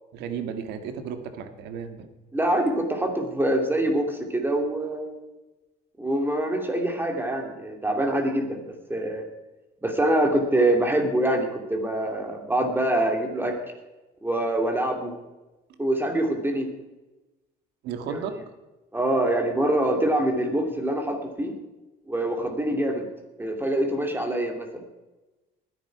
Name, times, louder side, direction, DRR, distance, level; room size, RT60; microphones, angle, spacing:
voice 1, 0.1-2.1 17.8-18.3, right 7 dB, 85° right, 8 dB, 1.7 m, -33 dB
voice 2, 2.3-5.2 6.0-9.2 9.8-13.5 14.2-15.1 15.8-16.7 18.1-18.2 18.9-21.5 22.1-23.1 23.4-24.8, right 1 dB, 10° right, 4 dB, 2.5 m, -25 dB
20.0 x 10.5 x 4.7 m, 1.1 s
cardioid pair, 110°, 17 cm